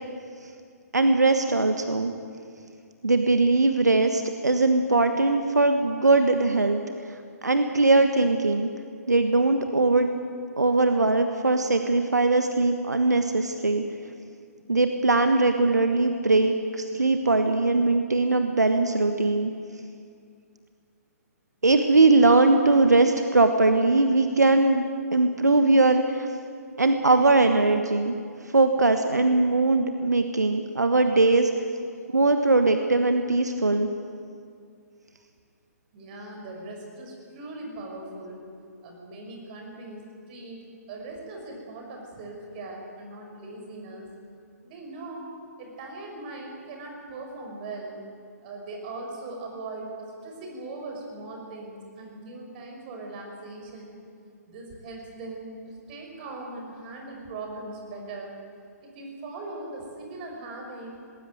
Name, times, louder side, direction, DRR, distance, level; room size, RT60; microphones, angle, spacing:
voice 1, 0.9-2.1 3.0-6.8 7.1-8.7 9.1-10.1 10.6-13.8 14.7-19.5 21.6-24.9 25.1-26.3 26.8-28.1 28.5-31.5 32.1-33.9, right 2 dB, 80° right, 7 dB, 1.4 m, -21 dB
voice 2, 35.9-38.4 38.8-44.1 44.6-45.3 45.6-48.0 48.4-54.0 54.5-58.3 58.8-61.0, right 2 dB, 35° right, 1 dB, 5.8 m, -40 dB
19.5 x 18.0 x 9.3 m, 2.3 s
figure-of-eight pair, 130°, 9 cm